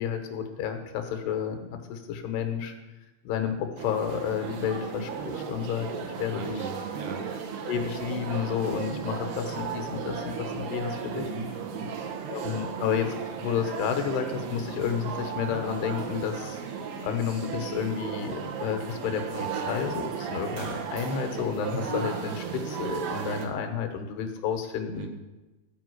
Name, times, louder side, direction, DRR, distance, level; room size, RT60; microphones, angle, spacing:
voice 1, 0.0-2.7 3.2-6.5 7.7-11.2 12.3-13.2 13.4-16.6 17.0-25.1, left 8 dB, 85° left, 5 dB, 3.1 m, -31 dB
sound 1, 3.8-23.5, right 6 dB, 85° right, 3.3 m, -35 dB
voice 2, 6.3-7.3 11.2-12.0 25.0-25.1, right 3 dB, 65° right, 3 dB, 2.3 m, -38 dB
13.5 x 5.2 x 7.8 m, 1.1 s
omnidirectional pair, 4.5 m